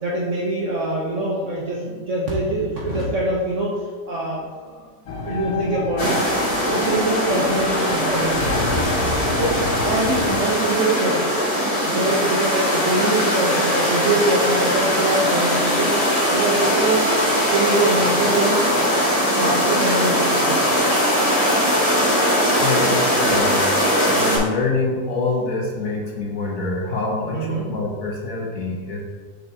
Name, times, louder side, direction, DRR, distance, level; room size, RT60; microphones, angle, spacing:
voice 1, 0.0-3.7 4.1-4.9 5.2-6.2 6.7-8.6 9.3-11.3 11.9-15.9 16.3-17.0 17.5-18.6 19.3-20.6 27.3-27.7, right 2 dB, 50° right, -5 dB, 1.2 m, -24 dB
sound 1, 5.1-10.4, left 3 dB, 85° left, 1.5 m, -29 dB
sound 2, 6.0-24.4, equal, 35° left, 2.2 m, -20 dB
voice 2, 22.6-23.7 24.0-29.0, left 3 dB, 55° left, -3 dB, 1.5 m, -25 dB
7.0 x 5.6 x 2.9 m, 1.5 s
omnidirectional pair, 1.9 m